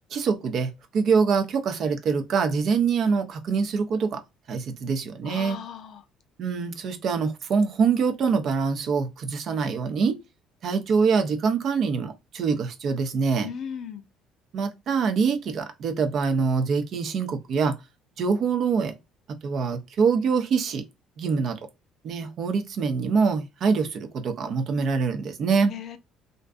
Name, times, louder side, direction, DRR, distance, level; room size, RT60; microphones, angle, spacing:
voice 1, 0.1-4.2 4.5-5.6 6.4-10.2 10.6-13.5 14.5-17.8 18.2-18.9 19.3-20.8 21.2-21.6 22.0-25.7, right 5 dB, 55° right, 0.5 m, -24 dB
voice 2, 5.2-6.0 13.4-14.0 25.7-26.0, left 8 dB, 55° left, 0.4 m, -36 dB
2.5 x 2.2 x 2.3 m
hypercardioid pair, 60°, 0 cm